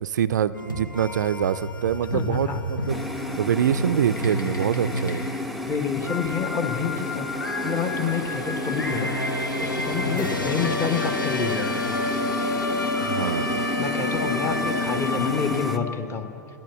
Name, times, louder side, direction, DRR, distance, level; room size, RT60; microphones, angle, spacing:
voice 1, 0.0-3.0 3.4-5.3 13.0-13.7, right 9 dB, 65° right, 15 dB, 0.4 m, -25 dB
sound 1, 0.5-16.0, left 2 dB, 90° left, 1.2 m, -29 dB
voice 2, 2.1-2.6 5.5-7.3 7.6-9.1 9.6-12.0 13.8-16.3, left 6 dB, 25° left, 7 dB, 1.1 m, -28 dB
sound 2, 2.9-15.8, left 1 dB, ahead, 0.5 m, -33 dB
10.5 x 10.5 x 6.9 m, 2.6 s
figure-of-eight pair, 105°, 10 cm